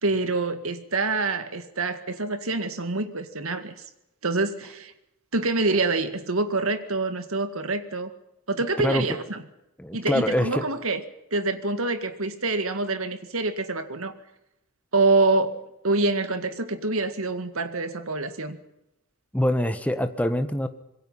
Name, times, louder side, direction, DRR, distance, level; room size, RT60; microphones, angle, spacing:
voice 1, 0.0-3.7 4.2-4.9 5.3-8.1 8.5-9.4 9.9-11.0 11.3-14.1 14.9-18.6, right 3 dB, 70° right, 9 dB, 2.0 m, -26 dB
voice 2, 9.8-10.6 19.3-20.7, left 1 dB, 5° left, 9 dB, 1.4 m, -24 dB
25.5 x 22.0 x 5.7 m, 0.89 s
head